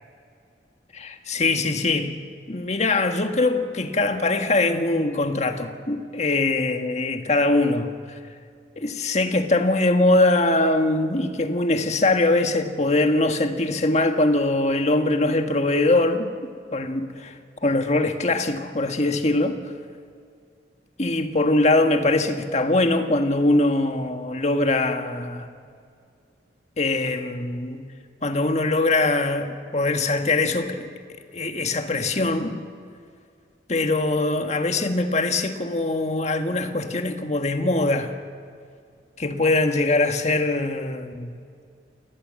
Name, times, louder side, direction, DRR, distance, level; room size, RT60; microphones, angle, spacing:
voice 1, 0.9-2.1 2.5-8.2 8.8-16.3 16.7-19.6 21.0-25.5 26.8-27.9 28.2-32.6 33.7-38.1 39.2-41.3, left 2 dB, 40° left, 1.6 m, -22 dB
28.5 x 17.5 x 7.7 m
head